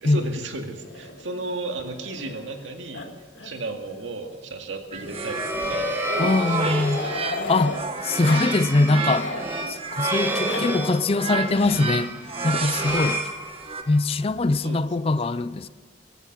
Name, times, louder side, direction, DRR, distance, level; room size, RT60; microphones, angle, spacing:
voice 1, 0.0-3.1 3.4-7.2 14.6-15.1, right 2 dB, 85° right, 2.1 m, -34 dB
Growling, 0.8-2.6 2.9-3.1 3.3-3.5 3.8-3.9 5.0-7.8 8.2-8.5 8.8-9.5 10.2-10.6 11.5-11.9 12.7-13.0 14.1-14.8, left 3 dB, 90° left, 1.9 m, -36 dB
sound 1, 4.9-14.0, equal, 15° right, 2.0 m, -30 dB
sound 2, 4.9-7.4 7.7-13.8, right 4 dB, 30° right, 1.1 m, -32 dB
voice 2, 6.2-7.0 7.5-7.8 8.0-9.3 9.7-12.2 12.4-13.2 13.9-15.7, left 2 dB, 30° left, 0.5 m, -22 dB
15.5 x 14.5 x 6.1 m
head